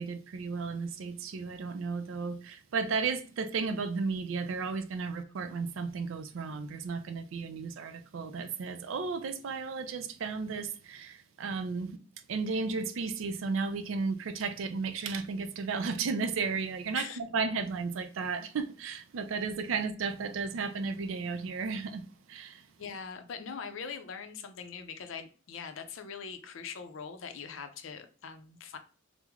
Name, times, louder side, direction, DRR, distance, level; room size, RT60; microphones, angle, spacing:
voice 1, 0.0-12.0 12.3-22.6, right 4 dB, 70° right, 0.4 m, -34 dB
voice 2, 22.8-28.8, left 6 dB, 70° left, 0.5 m, -42 dB
3.1 x 2.0 x 3.5 m
head